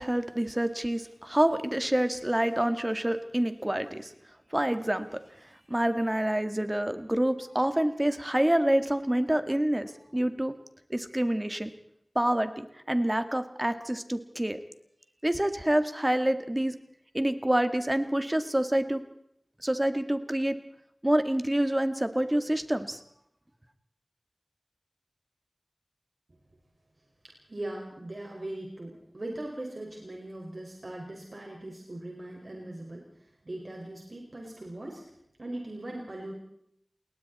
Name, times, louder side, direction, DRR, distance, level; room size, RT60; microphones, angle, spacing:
voice 1, 0.0-4.1 4.5-5.2 5.7-10.5 10.9-11.7 12.2-12.5 12.9-14.6 15.2-16.7 17.1-19.0 19.6-20.6 21.0-23.0, right 1 dB, 20° right, 9 dB, 1.9 m, -27 dB
voice 2, 27.2-35.1 35.4-36.3, right 1 dB, 55° right, 0 dB, 5.3 m, -40 dB
29.5 x 21.0 x 4.3 m, 0.73 s
wide cardioid pair, 60°, 0 cm